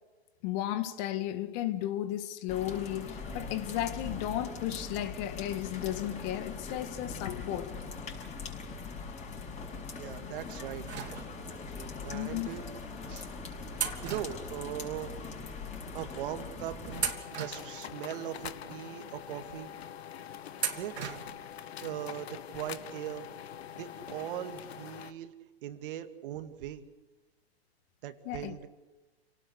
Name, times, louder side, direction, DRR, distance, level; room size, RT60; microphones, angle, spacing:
voice 1, 0.4-7.8 12.1-12.6 15.9-16.0 28.3-28.7, left 12 dB, 40° left, 2.0 m, -34 dB
sound 1, 2.5-17.1, left 4 dB, 20° left, 6.1 m, -41 dB
voice 2, 9.9-10.9 12.0-12.6 13.1-13.3 14.0-15.2 15.9-19.7 20.7-21.0 21.8-23.3 23.7-25.3 25.6-26.8 28.0-28.6, right 12 dB, 55° right, 2.3 m, -40 dB
sound 2, 10.9-11.7 12.5-12.7 13.7-15.2 15.5-15.6 16.3-16.5 16.9-18.3 18.8-18.9 20.6-21.5 21.8-21.9 23.1-23.2 23.5-23.6, right 7 dB, 90° right, 3.1 m, -37 dB
sound 3, 16.9-25.1, left 10 dB, 75° left, 1.8 m, -44 dB
29.0 x 18.5 x 6.6 m
hypercardioid pair, 130°, 32 cm